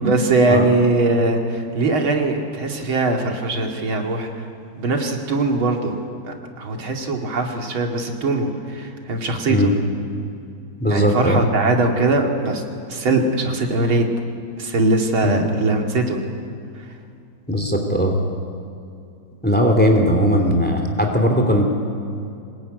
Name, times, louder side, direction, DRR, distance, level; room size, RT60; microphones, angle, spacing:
voice 1, 0.0-4.3 4.7-5.9 6.2-9.7 10.9-12.6 12.9-14.1 14.6-16.2, right 2 dB, 85° right, 2 dB, 3.3 m, -21 dB
voice 2, 10.8-11.4 15.2-15.4 17.5-18.2 19.4-21.7, equal, 5° left, 3 dB, 3.0 m, -18 dB
25.5 x 20.0 x 9.5 m, 2.6 s
omnidirectional pair, 2.2 m